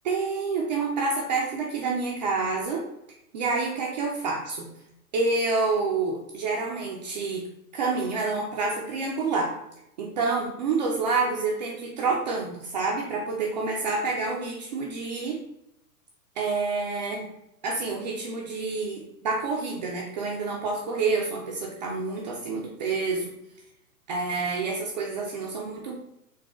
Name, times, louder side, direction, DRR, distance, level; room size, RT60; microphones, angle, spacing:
voice 1, 0.1-2.9 3.3-4.7 5.1-7.4 7.7-9.5 10.0-15.4 16.4-17.3 17.6-23.3 24.1-26.0, right 4 dB, 30° right, -2 dB, 0.4 m, -28 dB
3.8 x 2.3 x 3.4 m, 0.82 s
hypercardioid pair, 120°, 45 cm